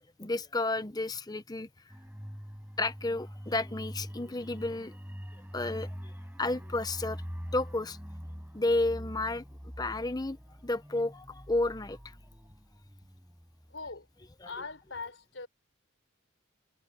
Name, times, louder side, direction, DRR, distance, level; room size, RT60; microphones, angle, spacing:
voice 1, 0.2-1.7 2.8-4.9 5.5-6.1 6.4-7.2 7.5-8.0 8.5-9.4 9.8-10.4 10.6-12.0 14.4-14.5, left 2 dB, 20° left, 0.8 m, -31 dB
sound 1, 1.9-14.3 14.6-14.7, equal, 10° right, 6.7 m, -44 dB
voice 2, 13.7-14.1 14.4-15.5, left 4 dB, 65° left, 4.5 m, -41 dB
head